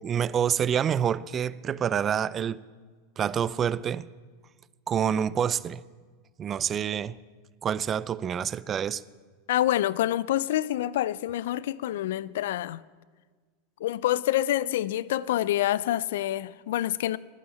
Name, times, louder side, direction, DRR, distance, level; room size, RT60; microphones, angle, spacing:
voice 1, 0.0-2.6 3.2-4.1 4.9-5.8 6.4-7.2 7.6-9.0, right 8 dB, 30° right, 0.4 m, -27 dB
voice 2, 9.5-12.8 13.8-17.2, left 13 dB, 75° left, 0.4 m, -27 dB
11.5 x 9.1 x 8.5 m
hypercardioid pair, 110°, 0 cm